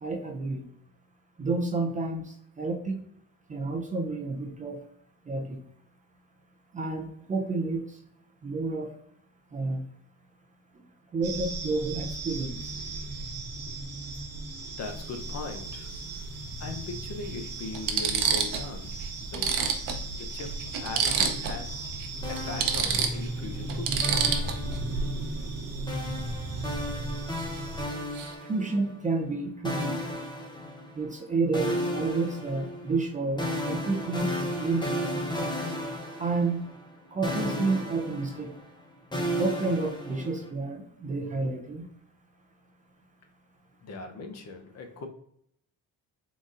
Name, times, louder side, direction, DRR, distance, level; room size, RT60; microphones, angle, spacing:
voice 1, 0.0-0.6 1.4-2.2 2.6-3.0 3.5-4.8 5.3-5.6 6.7-7.8 8.4-8.9 9.5-9.8 11.1-12.6 28.5-29.9 31.0-34.3 34.6-35.0 36.2-36.6 37.1-38.5 39.4-41.8, right 3 dB, 20° right, 2 dB, 0.4 m, -30 dB
sound 1, 11.2-27.8, right 2 dB, 45° right, 1.0 m, -36 dB
voice 2, 14.8-15.9 16.6-18.9 19.2-19.5 20.1-21.9 22.3-24.1 43.8-45.1, left 3 dB, 45° left, 5 dB, 0.7 m, -39 dB
sound 2, 14.8-15.0 16.5-16.6 17.2-17.3 17.7-18.7 19.0-19.1 19.3-21.6 21.9-22.1 22.4-24.8 27.4-27.6 27.9-28.3, right 6 dB, 65° right, 0.7 m, -28 dB
sound 3, 22.2-23.5 24.0-25.2 25.9-29.0 29.6-31.2 31.5-37.0 37.2-40.5, equal, 15° left, 0.7 m, -34 dB
3.9 x 3.8 x 2.4 m, 0.71 s
cardioid pair, 120°, 35 cm